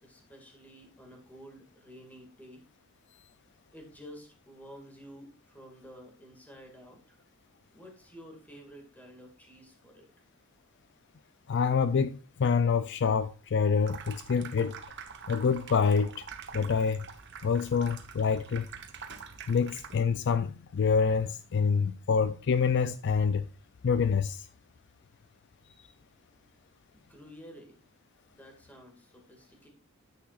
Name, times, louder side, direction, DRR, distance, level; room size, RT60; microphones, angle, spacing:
voice 1, 0.0-2.7 3.7-7.2 7.7-10.1 26.9-27.8 28.3-29.7, equal, 10° left, 2.1 m, -51 dB
voice 2, 11.5-14.8 15.3-16.3 16.5-17.1 17.4-18.7 19.5-23.4 23.8-24.5, left 5 dB, 55° left, 0.4 m, -26 dB
Water tap faucet / Sink (filling or washing), 13.7-20.2, right 6 dB, 55° right, 1.1 m, -46 dB
10.0 x 8.7 x 2.5 m
head